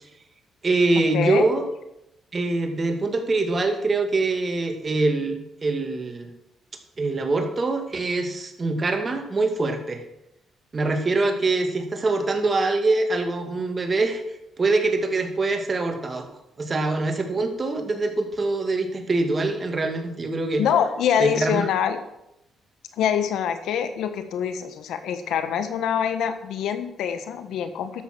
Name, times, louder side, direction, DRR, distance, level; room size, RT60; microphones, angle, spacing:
voice 1, 0.6-1.6 2.3-6.3 7.0-10.0 10.7-14.2 14.6-16.2 16.6-20.6 21.2-21.7, right 3 dB, 35° right, 5 dB, 2.2 m, -24 dB
voice 2, 1.1-1.5 20.6-22.0 23.0-28.0, left 8 dB, 80° left, 9 dB, 1.3 m, -25 dB
12.5 x 7.2 x 6.1 m, 0.84 s
cardioid pair, 90°, 0 cm